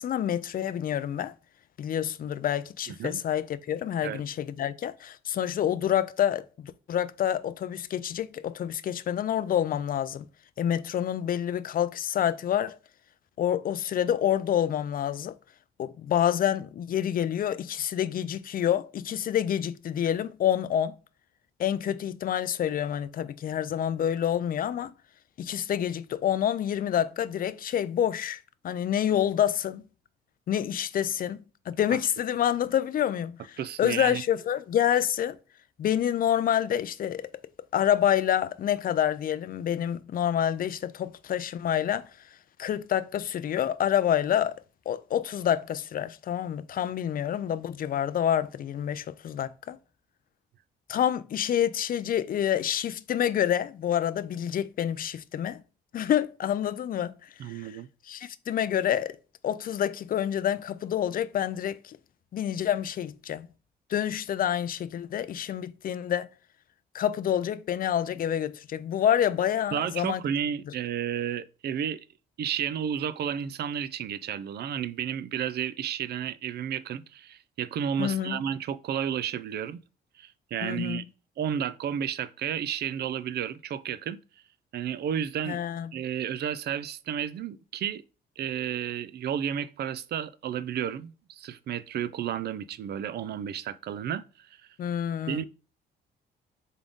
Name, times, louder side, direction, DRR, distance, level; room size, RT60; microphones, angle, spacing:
voice 1, 0.0-1.3 1.8-10.3 10.6-12.8 13.4-15.4 15.8-21.0 21.6-24.9 25.4-29.8 30.5-31.4 31.7-35.4 35.8-37.3 37.7-42.1 42.6-44.6 44.9-49.8 50.9-55.6 55.9-57.8 58.0-59.2 59.4-62.0 62.3-63.5 63.9-66.3 66.9-70.2 70.7-70.8 78.0-78.4 80.6-81.0 85.5-85.9 94.8-95.4, left 10 dB, 45° left, 0.4 m, -28 dB
voice 2, 33.6-34.2 57.4-57.9 69.7-72.0 72.4-79.8 80.2-81.0 81.4-84.2 84.7-85.6 85.9-88.0 88.4-94.5 95.3-95.4, right 9 dB, 55° right, 0.4 m, -32 dB
3.7 x 3.6 x 3.6 m
cardioid pair, 90°, 20 cm